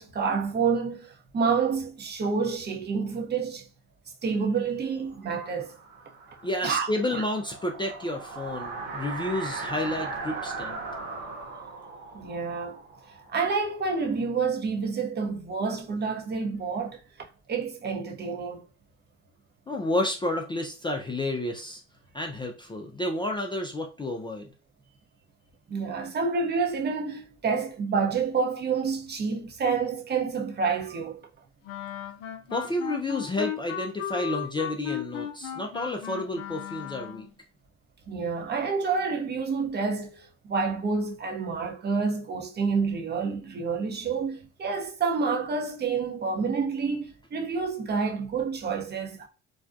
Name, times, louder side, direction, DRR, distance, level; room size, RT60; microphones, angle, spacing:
voice 1, 0.0-3.7 4.2-5.8 6.6-7.3 12.1-12.8 13.3-18.6 25.7-31.2 38.1-49.3, right 5 dB, 25° right, 0.6 m, -28 dB
sound 1, 5.3-14.0, right 3 dB, 75° right, 0.8 m, -38 dB
voice 2, 6.4-10.8 19.7-21.8 22.1-24.5 32.5-37.3, left 1 dB, 15° left, 0.3 m, -30 dB
Wind instrument woodwind instrument, 31.7-37.3, left 10 dB, 75° left, 0.6 m, -36 dB
2.5 x 2.1 x 2.4 m
hypercardioid pair, 70°, 38 cm